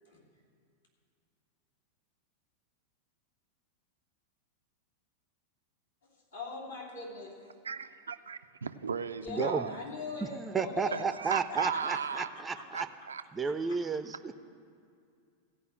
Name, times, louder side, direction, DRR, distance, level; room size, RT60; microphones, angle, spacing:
voice 1, 6.3-7.4 9.2-11.1 11.5-12.7 13.4-13.8, left 3 dB, 75° left, -4 dB, 2.7 m, -42 dB
voice 2, 7.6-9.8 10.9-12.3 12.7-13.2, right 6 dB, 70° right, 12 dB, 0.4 m, -36 dB
voice 3, 9.3-9.7 10.2-12.9 13.3-14.4, right 5 dB, 15° right, 11 dB, 0.5 m, -33 dB
16.0 x 5.4 x 7.7 m, 2.3 s
figure-of-eight pair, 90°, 0 cm